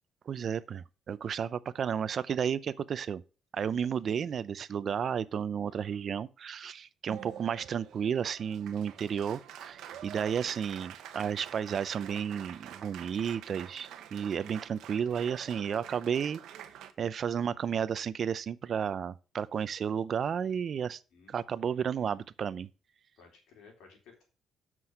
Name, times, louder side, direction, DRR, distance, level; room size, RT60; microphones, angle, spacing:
voice 1, 0.3-3.2 3.5-16.4 17.0-21.0 21.3-22.7, right 7 dB, 55° right, 0.5 m, -32 dB
Applause, 7.1-16.9, right 10 dB, 85° right, 0.9 m, -47 dB
voice 2, 23.2-24.2, left 5 dB, 85° left, 3.7 m, -57 dB
7.8 x 6.1 x 4.8 m
cardioid pair, 90°, 0 cm